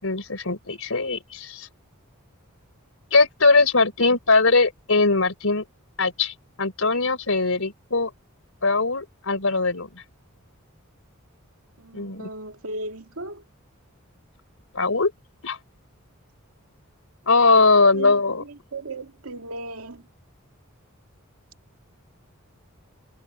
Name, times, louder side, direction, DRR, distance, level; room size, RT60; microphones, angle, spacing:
voice 1, 0.0-1.7 3.1-5.6 6.0-8.1 8.6-10.0 11.9-12.3 14.7-15.1 15.4-15.6 17.3-18.4, left 3 dB, 70° left, 5.1 m, -21 dB
voice 2, 11.8-13.4 17.9-18.2 18.5-20.0, right 2 dB, 90° right, 2.2 m, -36 dB
head